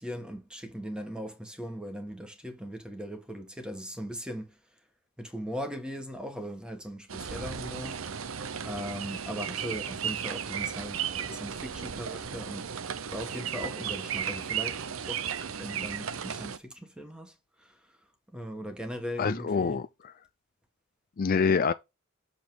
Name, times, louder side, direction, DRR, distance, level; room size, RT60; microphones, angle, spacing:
voice 1, 0.0-4.6 5.2-8.3 8.6-12.7 13.1-15.3 15.6-18.0 18.3-19.8, equal, 5° right, 1.5 m, -39 dB
sound 1, 7.1-16.6, right 8 dB, 80° right, 0.7 m, -35 dB
voice 2, 19.2-20.1 21.2-21.7, left 5 dB, 45° left, 0.4 m, -26 dB
6.8 x 4.9 x 3.9 m
head